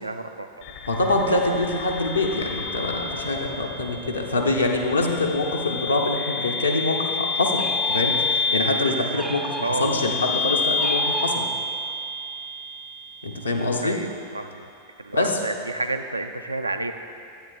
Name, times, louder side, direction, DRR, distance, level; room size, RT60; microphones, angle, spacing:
voice 1, 0.0-0.6 1.3-1.6 9.6-10.1 13.8-14.7 15.0-16.9, right 2 dB, 85° right, 7 dB, 0.3 m, -30 dB
sound 1, 0.6-13.6, left 3 dB, 45° left, 0.7 m, -29 dB
voice 2, 0.9-11.5 13.2-14.0 15.1-15.3, left 2 dB, 75° left, 1 dB, 0.7 m, -25 dB
sound 2, 7.5-8.6 9.1-10.2 10.8-11.9, right 1 dB, 5° right, 0.4 m, -36 dB
10.0 x 8.7 x 2.3 m, 2.6 s
figure-of-eight pair, 90°, 0 cm